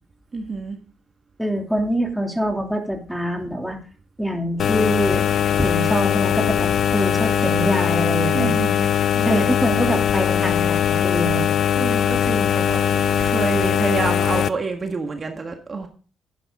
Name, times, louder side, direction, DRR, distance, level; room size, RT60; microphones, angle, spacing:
voice 1, 0.3-0.8 8.3-9.4 11.8-15.9, right 4 dB, 35° right, 4 dB, 1.7 m, -28 dB
voice 2, 1.4-3.8 4.2-5.2 5.5-8.5 9.2-11.5, equal, ahead, 2 dB, 2.8 m, -24 dB
sound 1, 4.6-14.5, left 9 dB, 65° left, 0.6 m, -20 dB
12.0 x 9.9 x 3.7 m, 0.39 s
cardioid pair, 90°, 0 cm